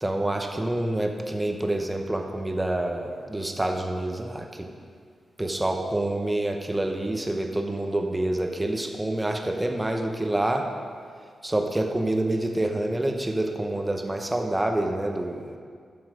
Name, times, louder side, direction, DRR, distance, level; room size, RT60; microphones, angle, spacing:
voice 1, 0.0-4.7 5.4-10.7 11.4-15.5, right 1 dB, 10° right, 3 dB, 0.9 m, -27 dB
11.5 x 7.0 x 5.1 m, 2.1 s
wide cardioid pair, 140°, 0 cm